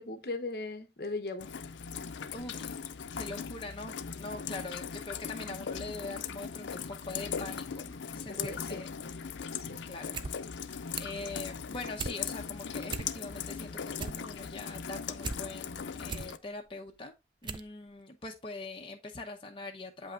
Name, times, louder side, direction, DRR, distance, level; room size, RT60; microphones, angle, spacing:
voice 1, 0.0-1.5 8.3-8.8 9.5-9.8, left 2 dB, 60° left, 0.9 m, -38 dB
Rain, 1.4-16.4, left 6 dB, 85° left, 0.5 m, -39 dB
voice 2, 2.3-2.7 3.1-8.9 9.8-10.2 10.5-10.7 11.0-17.2 17.4-20.1, left 2 dB, 30° left, 0.8 m, -43 dB
sound 1, 10.1-10.3 10.6-11.2 11.6-12.2 12.6-12.7 12.9-13.4 13.8-15.4 15.8-16.3 16.9-17.0 17.4-17.7 18.0-18.1, right 4 dB, 25° right, 0.3 m, -38 dB
7.8 x 5.6 x 2.4 m
head